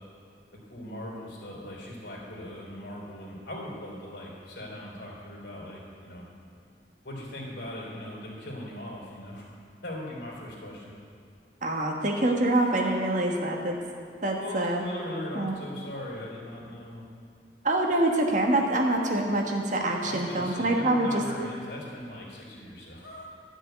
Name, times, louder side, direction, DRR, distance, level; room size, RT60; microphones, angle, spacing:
voice 1, 0.7-6.3 7.0-9.5 9.8-10.9 14.4-17.0 20.0-23.3, left 1 dB, 70° left, -4 dB, 3.6 m, -39 dB
voice 2, 11.6-13.8 14.2-14.8 15.3-15.5 17.6-21.2, right 1 dB, 45° right, 1 dB, 1.4 m, -25 dB
12.5 x 6.4 x 9.2 m, 2.2 s
head